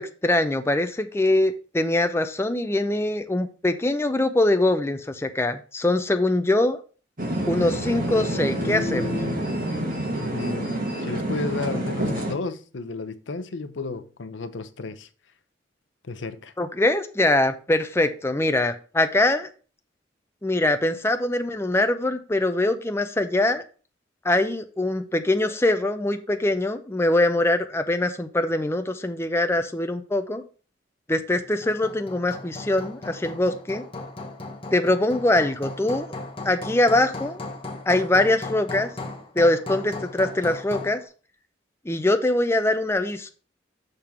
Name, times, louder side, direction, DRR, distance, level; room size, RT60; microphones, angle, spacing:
voice 1, 0.0-6.8 7.5-9.1 16.6-19.5 20.4-23.6 24.2-30.4 31.1-33.8 34.7-36.1 36.4-37.4 37.9-38.9 39.4-41.0 41.9-43.3, left 1 dB, 15° left, 0.5 m, -23 dB
sound 1, 7.2-12.3, equal, 50° right, 1.5 m, -27 dB
voice 2, 10.3-15.1 16.0-16.5, left 3 dB, 80° left, 0.7 m, -33 dB
Hammer, 31.4-41.0, left 2 dB, 30° left, 1.1 m, -37 dB
6.7 x 3.6 x 5.8 m
head